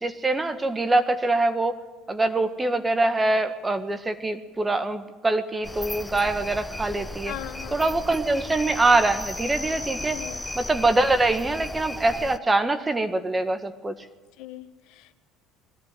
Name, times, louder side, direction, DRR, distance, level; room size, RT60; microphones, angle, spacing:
voice 1, 0.0-1.7 2.1-7.3 7.7-10.2 10.6-13.9, right 2 dB, 20° right, 9 dB, 1.7 m, -24 dB
sound 1, 5.6-12.4, left 1 dB, 10° left, 0.8 m, -35 dB
voice 2, 7.2-8.0 10.1-10.4 14.4-15.1, left 13 dB, 65° left, 10 dB, 1.1 m, -39 dB
21.0 x 14.0 x 9.3 m, 1.3 s
hypercardioid pair, 65°, 0 cm